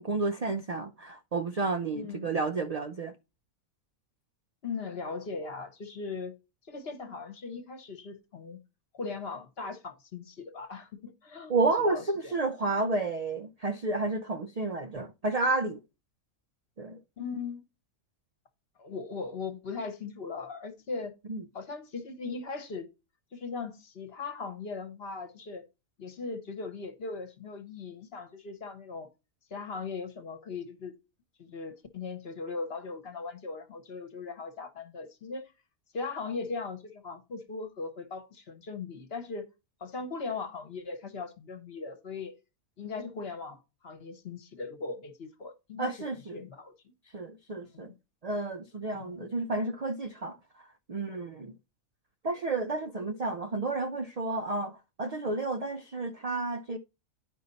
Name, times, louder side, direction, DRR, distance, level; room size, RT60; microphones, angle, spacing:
voice 1, 0.0-3.1 11.5-15.8 16.8-17.0 21.3-21.4 45.8-46.4 47.1-47.9 48.2-50.4 50.9-51.5 52.2-56.8, right 3 dB, 70° right, 0.3 m, -31 dB
voice 2, 1.9-2.3 4.6-6.3 6.7-8.6 8.9-12.3 17.2-17.6 18.8-21.1 21.5-22.9 23.3-25.7 26.0-29.1 29.5-30.9 31.4-35.5 35.9-39.5 39.8-42.4 42.8-46.0 46.3-46.7 47.7-47.9 49.0-49.3, left 4 dB, 45° left, 1.2 m, -39 dB
10.0 x 5.3 x 4.0 m
omnidirectional pair, 1.5 m